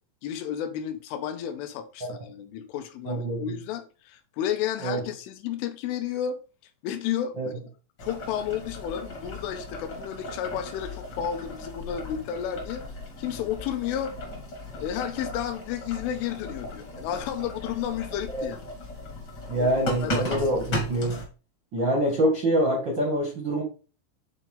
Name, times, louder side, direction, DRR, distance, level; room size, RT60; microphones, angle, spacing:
voice 1, 0.2-6.4 6.8-7.6 8.0-12.9 13.2-14.2 14.8-18.6 19.6-20.7, left 9 dB, 80° left, 3.0 m, -32 dB
voice 2, 3.0-3.4 4.8-5.0 7.4-7.5 18.3-18.4 19.5-21.2 21.7-23.6, right 1 dB, 85° right, 1.0 m, -25 dB
Boiling, 8.0-21.2, left 1 dB, 55° left, 1.1 m, -36 dB
9.1 x 4.2 x 3.7 m
omnidirectional pair, 6.0 m